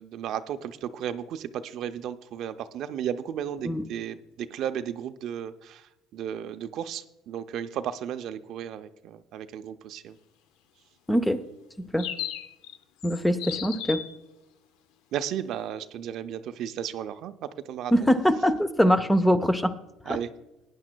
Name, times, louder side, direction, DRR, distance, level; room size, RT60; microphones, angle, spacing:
voice 1, 0.0-10.2 15.1-18.1 20.1-20.3, right 9 dB, 60° right, 10 dB, 0.5 m, -34 dB
voice 2, 11.1-11.4 11.9-12.1 13.0-14.0 17.9-19.7 20.1-20.2, equal, 5° left, 12 dB, 0.5 m, -22 dB
sound 1, 12.0-12.8 13.0-14.2, left 9 dB, 85° left, 0.5 m, -35 dB
19.0 x 9.8 x 2.2 m, 0.94 s
cardioid pair, 130°, 0 cm